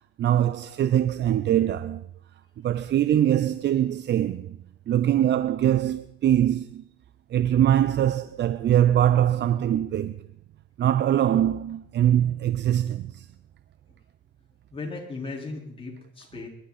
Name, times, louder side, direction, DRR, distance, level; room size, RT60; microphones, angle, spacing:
voice 1, 0.2-2.1 2.6-4.6 4.9-6.8 7.3-10.3 10.8-13.3, right 11 dB, 60° right, 0.6 m, -22 dB
voice 2, 14.7-16.5, left 3 dB, 30° left, 4.5 m, -36 dB
22.0 x 11.5 x 4.2 m
cardioid pair, 90°, 20 cm